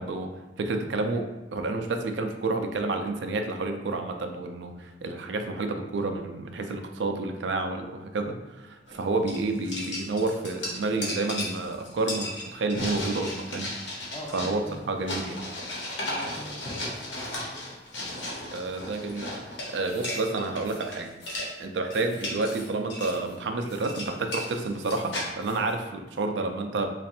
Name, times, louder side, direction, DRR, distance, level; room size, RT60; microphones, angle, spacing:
voice 1, 0.0-13.7 14.3-15.4 18.5-19.3 19.7-21.2 21.6-26.9, right 3 dB, 75° right, 5 dB, 0.4 m, -30 dB
sound 1, 8.9-9.0 9.3-21.0 21.2-21.5 21.9-22.5 22.9-23.2 23.7-25.3, left 1 dB, 90° left, 1.1 m, -35 dB
voice 2, 14.1-14.9 16.0-17.6, left 1 dB, 20° left, 0 dB, 0.5 m, -43 dB
sound 2, 19.7-20.2 20.6-20.9 21.2-21.5 21.9-23.4 23.7-24.0 24.3-25.7, left 2 dB, 55° left, 1.0 m, -50 dB
3.1 x 2.5 x 4.3 m, 1.1 s
head